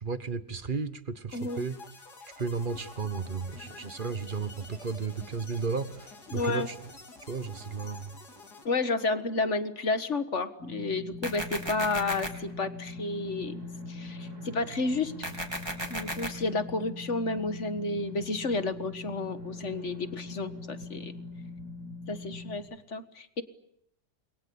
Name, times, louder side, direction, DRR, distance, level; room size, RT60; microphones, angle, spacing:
voice 1, 0.0-1.8 2.4-6.8 7.3-8.1, right 4 dB, 35° right, 13 dB, 1.3 m, -34 dB
sound 1, 1.3-8.7, left 3 dB, 70° left, 3.8 m, -49 dB
voice 2, 1.3-1.7 6.3-6.7 8.7-13.6 13.9-15.3 15.9-21.1 22.1-22.6 22.9-23.4, left 3 dB, 45° left, 11 dB, 1.9 m, -31 dB
sound 2, 10.6-22.6, left 2 dB, 65° right, 4.9 m, -42 dB
sound 3, 11.2-12.3 15.2-16.3, right 1 dB, 15° right, 3.8 m, -34 dB
29.0 x 22.5 x 8.6 m, 0.76 s
omnidirectional pair, 1.8 m